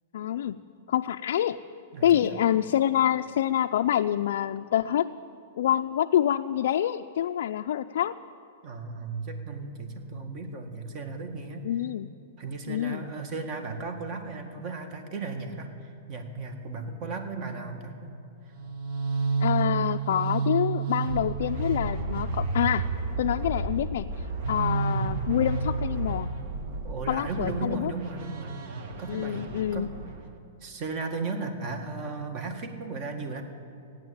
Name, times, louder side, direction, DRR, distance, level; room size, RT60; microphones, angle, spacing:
voice 1, 0.1-0.6 0.9-1.6 2.0-5.1 5.6-8.1 11.6-12.1 12.7-13.1 19.4-22.9 23.2-26.3 27.1-27.9 29.1-29.9, left 11 dB, 70° left, 5 dB, 0.4 m, -26 dB
voice 2, 1.9-2.4 8.6-11.7 12.4-18.2 26.8-28.6 29.0-29.5 29.7-29.9 30.6-33.4, right 3 dB, 35° right, 6 dB, 1.8 m, -35 dB
sound 1, 18.5-30.3, right 4 dB, 55° right, 1.6 m, -31 dB
15.5 x 9.7 x 8.7 m, 2.7 s
hypercardioid pair, 150°, 0 cm